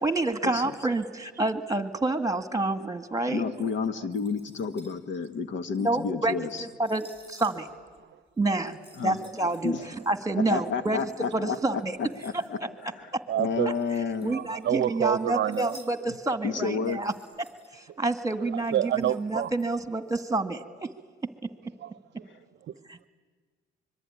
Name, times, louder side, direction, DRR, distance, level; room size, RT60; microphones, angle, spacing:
voice 1, 0.0-3.4 5.8-6.3 6.6-7.7 8.4-9.7 10.1-11.0 11.3-12.0 12.3-12.4 14.2-17.1 17.7-20.9 21.4-21.5, right 2 dB, 15° right, 1.9 m, -28 dB
voice 2, 3.3-6.6 9.0-9.2 9.6-9.9 10.5-12.6 12.9-14.4 16.4-17.0, left 5 dB, 70° left, 1.5 m, -31 dB
sound 1, 4.1-8.0 8.3-12.5 13.3-14.8 15.1-15.9 16.2-16.3 16.7-17.8 18.1-18.2 18.4-20.2, right 1 dB, 10° left, 6.3 m, -55 dB
voice 3, 13.3-13.8 14.3-15.8 17.9-18.0 18.5-19.5 21.6-22.3 22.5-23.1, right 11 dB, 65° right, 0.7 m, -29 dB
24.5 x 23.0 x 9.9 m
cardioid pair, 90°, 20 cm